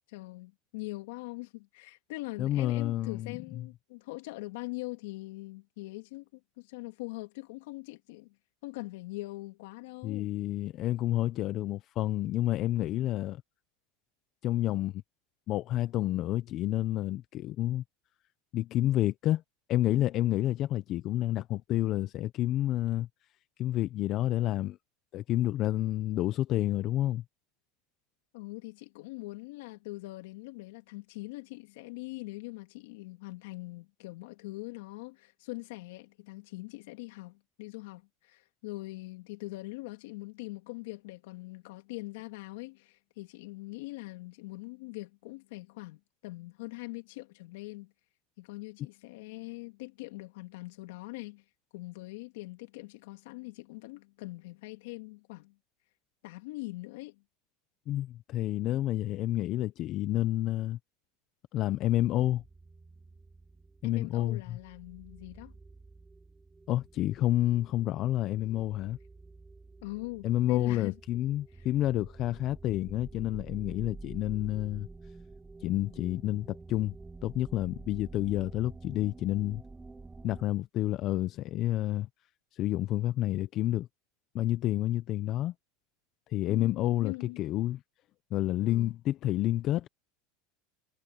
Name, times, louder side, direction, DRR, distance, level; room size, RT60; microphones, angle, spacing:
voice 1, 0.1-8.4 8.6-10.3 28.3-47.9 48.4-51.4 51.7-55.6 56.2-57.2 63.8-65.5 69.8-71.2 71.6-71.7 86.5-87.4 88.6-88.9, left 22 dB, 75° left, 2.8 m, -42 dB
voice 2, 2.4-3.6 10.0-13.4 14.4-14.9 15.5-17.8 18.5-19.4 19.7-23.1 23.6-24.8 25.1-27.2 57.9-60.8 61.5-62.4 63.8-64.6 66.7-69.0 70.2-74.9 75.6-77.0 77.2-79.6 80.2-82.1 82.5-83.9 84.3-85.5 86.3-87.8 88.3-89.9, left 14 dB, 45° left, 0.8 m, -29 dB
sound 1, 61.9-80.4, right 3 dB, 10° right, 3.5 m, -49 dB
supercardioid pair, 125°, 0 cm